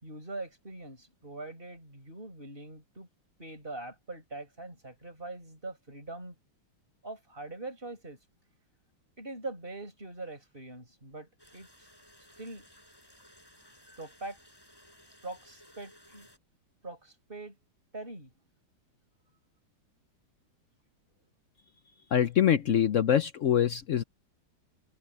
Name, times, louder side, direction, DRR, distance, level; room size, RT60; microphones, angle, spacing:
voice 1, 0.0-3.1 3.4-6.4 7.0-8.2 9.2-11.7 12.4-12.7 14.0-14.4 15.2-16.3 16.8-17.6 17.9-18.3, right 2 dB, 25° right, 7.0 m, -42 dB
sound 1, 11.4-16.4, equal, 10° left, 7.5 m, -58 dB
voice 2, 22.1-24.0, left 9 dB, 85° left, 0.6 m, -24 dB
omnidirectional pair, 2.3 m